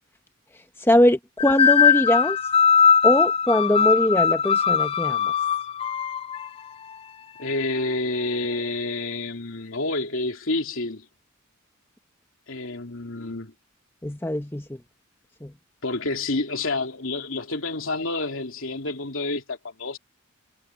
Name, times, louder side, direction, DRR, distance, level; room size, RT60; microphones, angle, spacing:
voice 1, 0.8-2.4 3.0-5.3 14.0-14.7 15.4-15.5, left 1 dB, 10° left, 1.0 m, -21 dB
sound 1, 1.4-6.5, left 7 dB, 25° left, 0.3 m, -20 dB
voice 2, 7.4-11.0 12.5-13.5 15.8-20.0, left 2 dB, 70° left, 3.2 m, -29 dB
head